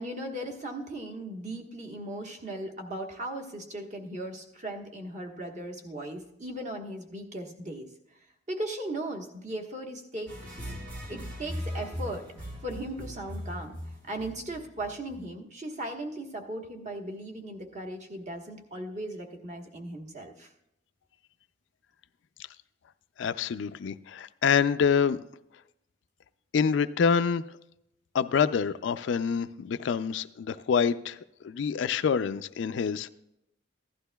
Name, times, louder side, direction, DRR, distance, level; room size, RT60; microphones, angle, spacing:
voice 1, 0.0-7.9 8.5-10.3 11.1-13.8 14.1-20.5, right 1 dB, 40° right, 2 dB, 1.2 m, -37 dB
sound 1, 10.3-15.3, equal, 70° right, 4.1 m, -39 dB
voice 2, 23.2-25.2 26.5-27.4 28.1-31.2 31.4-33.1, left 6 dB, 65° left, 12 dB, 0.3 m, -26 dB
15.5 x 11.5 x 2.3 m, 0.81 s
head